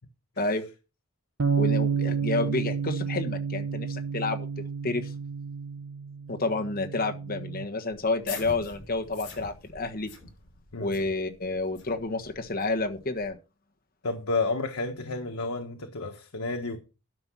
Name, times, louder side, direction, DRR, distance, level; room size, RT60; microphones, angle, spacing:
sound 1, 1.4-7.6, right 6 dB, 75° right, 0.9 m, -30 dB
voice 1, 1.6-4.5 4.8-5.1 6.3-10.1 10.8-13.4, left 3 dB, 40° left, 1.4 m, -30 dB
sound 2, 7.9-13.3, left 4 dB, 60° left, 7.2 m, -45 dB
voice 2, 10.7-11.1 14.0-16.8, left 3 dB, 90° left, 1.3 m, -31 dB
12.0 x 5.8 x 6.2 m
head